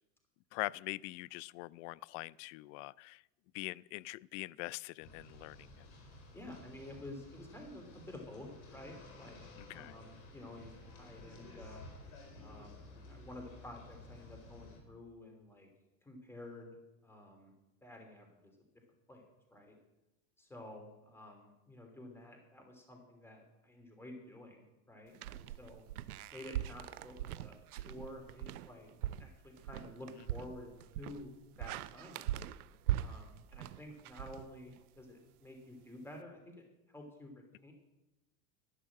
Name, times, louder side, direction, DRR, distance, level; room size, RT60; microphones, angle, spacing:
voice 1, 0.5-3.2 3.5-5.9 9.6-9.9, left 21 dB, 60° left, 22 dB, 0.5 m, -43 dB
sound 1, 5.0-14.8, left 2 dB, 75° left, 4.7 m, -54 dB
voice 2, 6.3-11.8 12.3-12.8 13.1-15.7 16.0-16.8 17.0-17.5 17.8-18.6 19.1-19.2 19.5-19.7 20.4-25.8 26.3-28.9 29.2-31.3 31.6-32.3 33.0-36.5 36.9-37.7, left 1 dB, 5° left, 2 dB, 3.1 m, -51 dB
sound 2, 25.1-35.0, right 12 dB, 85° right, 0.6 m, -41 dB
11.5 x 11.0 x 7.5 m, 0.96 s
hypercardioid pair, 110°, 43 cm